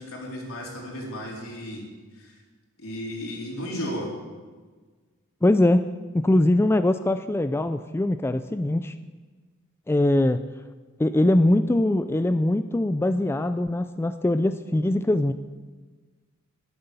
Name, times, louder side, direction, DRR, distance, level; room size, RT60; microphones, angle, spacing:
voice 1, 0.0-1.9 2.2-2.4 2.8-4.1, equal, 75° left, -2 dB, 3.9 m, -34 dB
voice 2, 5.4-5.9 6.1-8.9 9.9-10.5 11.0-15.3, left 1 dB, 10° left, 10 dB, 0.3 m, -22 dB
13.0 x 10.5 x 6.9 m, 1.4 s
head